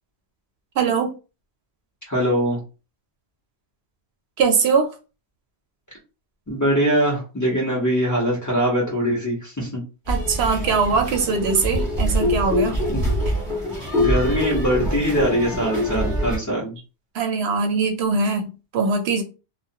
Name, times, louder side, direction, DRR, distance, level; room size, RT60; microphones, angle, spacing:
voice 1, 0.8-1.1 4.4-4.9 10.1-12.8 17.1-19.2, right 5 dB, 75° right, 0.8 m, -21 dB
voice 2, 2.1-2.6 6.5-9.8 12.9-13.0 14.0-16.8, equal, 20° left, 0.9 m, -22 dB
sound 1, 10.1-16.4, left 1 dB, 25° right, 0.9 m, -24 dB
2.4 x 2.2 x 2.7 m
omnidirectional pair, 1.1 m